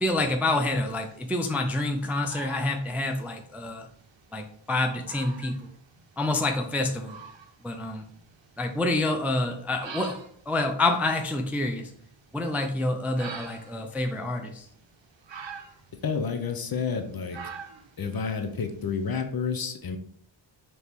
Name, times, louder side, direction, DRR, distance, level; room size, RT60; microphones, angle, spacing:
voice 1, 0.0-3.9 4.3-5.6 6.2-7.2 7.6-8.0 8.6-10.2 10.5-11.9 12.3-14.7, left 2 dB, 5° right, 4 dB, 0.3 m, -27 dB
sound 1, 0.5-19.2, right 6 dB, 60° right, 0.7 m, -47 dB
voice 2, 16.0-17.4 18.0-20.0, left 5 dB, 45° left, 6 dB, 0.6 m, -30 dB
4.1 x 3.0 x 3.4 m, 0.62 s
wide cardioid pair, 95°, 49 cm